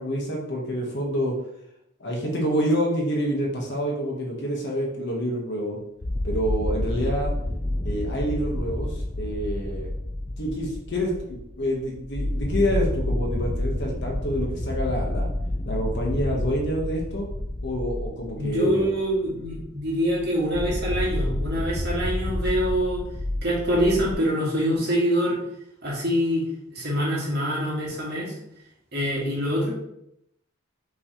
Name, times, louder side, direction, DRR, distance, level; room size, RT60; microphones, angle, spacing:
voice 1, 0.0-1.4 2.0-5.8 6.2-7.3 7.8-9.9 10.4-15.3 15.6-17.3 17.6-18.9, equal, 55° left, -1 dB, 1.0 m, -27 dB
sound 1, 6.0-24.1, left 1 dB, 20° left, 0.3 m, -29 dB
voice 2, 18.4-23.0 23.4-25.4 25.8-26.5 26.7-28.3 28.9-29.7, equal, 50° right, -5 dB, 1.6 m, -25 dB
5.7 x 3.1 x 2.8 m, 0.78 s
head